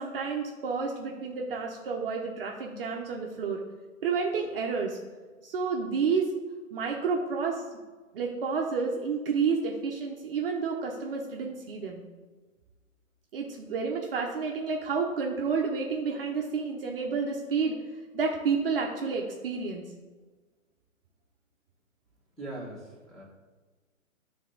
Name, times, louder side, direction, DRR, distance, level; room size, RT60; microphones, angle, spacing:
voice 1, 0.0-3.6 4.0-5.0 5.4-6.3 6.7-7.6 8.1-12.0 13.3-17.8 18.1-19.8, right 5 dB, 45° right, 1 dB, 0.7 m, -30 dB
voice 2, 22.4-23.2, right 1 dB, ahead, -7 dB, 1.3 m, -40 dB
9.1 x 3.4 x 3.9 m, 1.3 s
hypercardioid pair, 145°, 41 cm